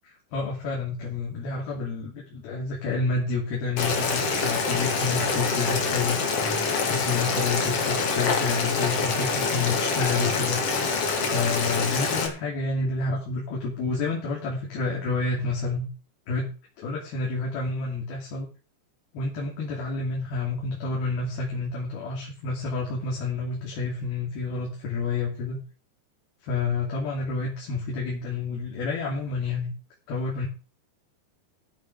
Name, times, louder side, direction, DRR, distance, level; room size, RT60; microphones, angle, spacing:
voice 1, 0.3-10.6 11.2-15.9 16.3-16.5 16.8-18.5 19.1-25.6 26.4-29.7 30.1-30.5, left 3 dB, 70° left, -2 dB, 4.6 m, -29 dB
Boiling, 3.8-12.3, left 4 dB, 45° left, 2.7 m, -25 dB
14.5 x 9.5 x 4.8 m, 0.36 s
omnidirectional pair, 4.6 m